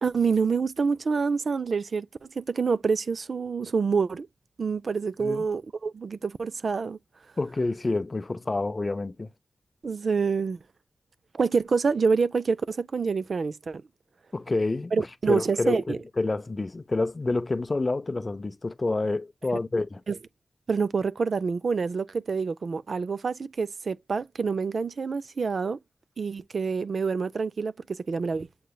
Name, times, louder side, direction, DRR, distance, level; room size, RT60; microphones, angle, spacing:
voice 1, 0.0-4.3 4.6-7.0 9.8-10.6 11.3-13.8 14.9-16.0 20.1-20.2 20.7-25.8 26.2-28.5, right 5 dB, 70° right, 0.3 m, -27 dB
voice 2, 7.4-9.3 14.3-20.0, left 2 dB, 35° left, 0.5 m, -28 dB
7.7 x 3.1 x 2.2 m
wide cardioid pair, 100°, 0 cm